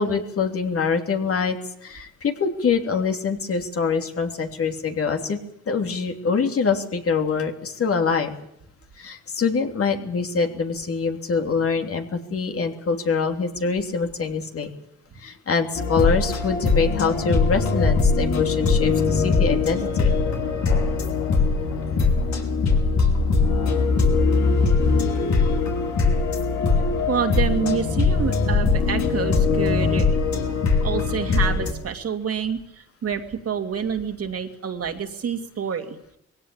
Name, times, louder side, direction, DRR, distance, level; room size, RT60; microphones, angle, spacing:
voice 1, 0.0-1.6 1.8-5.4 5.7-8.3 9.0-14.7 15.2-20.2, left 5 dB, 50° left, 4 dB, 3.2 m, -24 dB
sound 1, 15.7-31.7, left 4 dB, 65° left, 5.4 m, -21 dB
voice 2, 27.1-30.2 30.8-36.0, right 7 dB, 50° right, 5 dB, 2.6 m, -27 dB
21.0 x 17.0 x 8.9 m, 0.74 s
cardioid pair, 90°, 30 cm